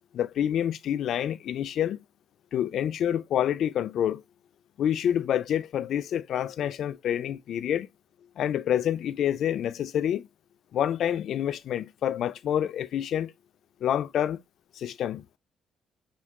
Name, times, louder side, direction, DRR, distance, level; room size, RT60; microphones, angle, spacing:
voice 1, 0.1-2.0 2.5-4.2 4.8-7.9 8.4-10.3 10.7-13.3 13.8-14.4 14.8-15.2, left 10 dB, 70° left, 0.3 m, -27 dB
4.4 x 2.3 x 3.5 m
cardioid pair, 90°, 0 cm